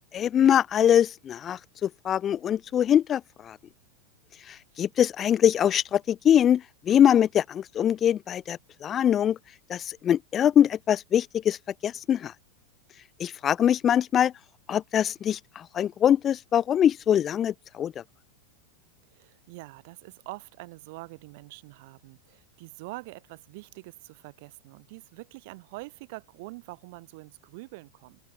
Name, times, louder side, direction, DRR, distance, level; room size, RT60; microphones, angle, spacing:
voice 1, 0.1-3.6 4.8-9.4 9.7-11.6 11.8-12.3 13.2-14.3 14.7-17.9, left 9 dB, 25° left, 0.5 m, -23 dB
voice 2, 19.1-28.2, right 24 dB, 50° right, 4.0 m, -44 dB
open air
figure-of-eight pair, 90°, 0 cm